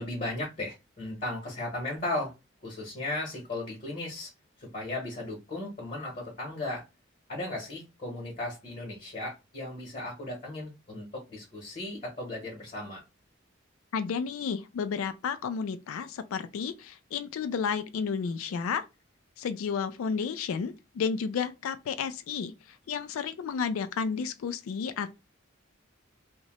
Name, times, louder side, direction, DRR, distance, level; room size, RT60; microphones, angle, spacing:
voice 1, 0.0-2.3 2.6-4.3 4.6-6.8 7.3-13.0, left 2 dB, 35° left, 0.9 m, -36 dB
voice 2, 13.9-18.8 19.4-22.5 22.9-25.1, left 6 dB, 85° left, 0.3 m, -32 dB
2.8 x 2.1 x 2.9 m
head